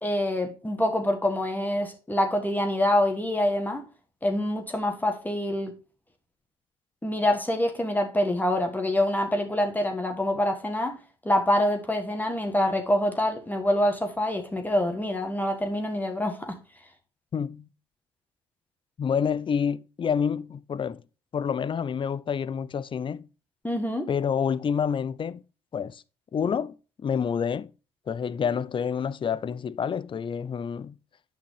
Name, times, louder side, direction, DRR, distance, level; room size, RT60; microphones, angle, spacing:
voice 1, 0.0-3.8 4.2-5.7 7.0-10.9 11.2-16.6 23.6-24.1, left 1 dB, 10° left, 1.5 m, -26 dB
voice 2, 17.3-17.7 19.0-21.0 21.3-23.3 24.1-25.4 25.7-26.0 26.3-26.8 27.0-27.7 28.1-31.0, left 7 dB, 35° left, 0.5 m, -28 dB
8.6 x 5.9 x 3.3 m
hypercardioid pair, 60°, 14 cm